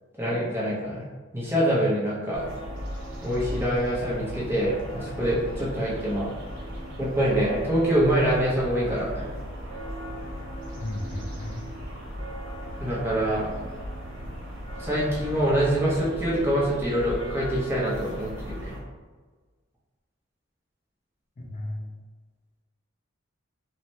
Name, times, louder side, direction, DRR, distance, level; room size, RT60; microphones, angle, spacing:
voice 1, 0.2-1.0 1.3-2.4 3.2-6.3 7.0-9.3 12.8-13.5 14.8-18.7, equal, 10° right, -7 dB, 0.7 m, -25 dB
sound 1, 2.3-18.8, equal, 85° right, 0.8 m, -37 dB
voice 2, 10.8-11.7 21.4-21.9, left 1 dB, 40° left, 0 dB, 0.4 m, -34 dB
3.2 x 2.1 x 2.7 m, 1.4 s
head